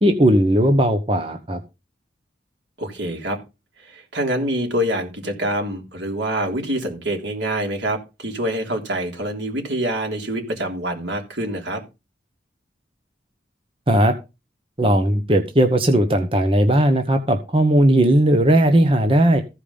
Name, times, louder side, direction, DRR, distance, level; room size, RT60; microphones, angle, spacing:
voice 1, 0.0-1.6 13.9-14.1 14.8-19.4, right 1 dB, 30° right, 6 dB, 1.1 m, -17 dB
voice 2, 2.8-3.4 3.8-11.8, right 1 dB, 85° right, 3 dB, 3.4 m, -26 dB
15.0 x 5.2 x 5.5 m, 0.27 s
head